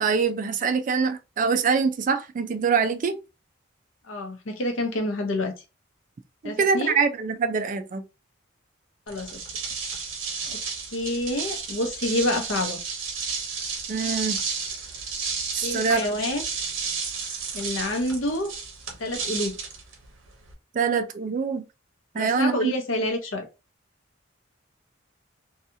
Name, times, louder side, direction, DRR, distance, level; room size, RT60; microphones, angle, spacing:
voice 1, 0.0-3.2 6.4-8.0 13.9-14.4 15.5-16.0 20.7-21.6 22.1-22.7, right 5 dB, 40° right, 0.3 m, -24 dB
voice 2, 4.1-5.5 6.4-7.0 9.1-9.4 10.4-10.6 10.9-12.8 15.6-16.4 17.5-18.5 19.0-19.6 22.1-23.4, left 1 dB, 85° left, 0.7 m, -28 dB
sound 1, 9.1-20.5, right 5 dB, 75° right, 0.8 m, -32 dB
2.7 x 2.3 x 2.6 m
head